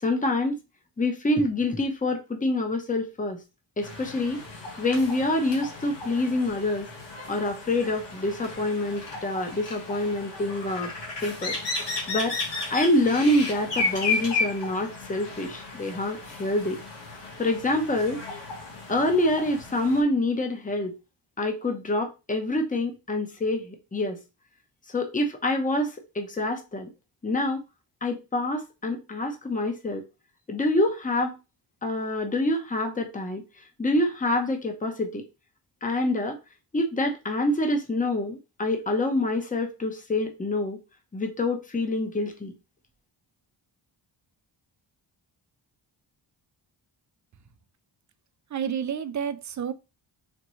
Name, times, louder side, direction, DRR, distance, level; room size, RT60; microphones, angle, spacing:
voice 1, 0.0-0.6 1.0-3.4 3.8-4.4 4.8-6.9 7.3-10.9 11.2-11.6 12.1-12.4 12.7-16.8 17.4-18.2 18.9-20.9 21.4-24.2 24.9-26.9 27.2-27.6 28.0-30.0 30.5-31.4 31.8-33.4 33.8-35.2 35.8-36.4 36.7-40.8 41.1-42.5, left 1 dB, 20° left, 0.9 m, -26 dB
sound 1, 3.8-20.0, left 3 dB, 65° left, 1.5 m, -34 dB
voice 2, 48.5-49.7, right 8 dB, 40° right, 0.5 m, -30 dB
4.3 x 2.9 x 3.1 m
cardioid pair, 90°, 45 cm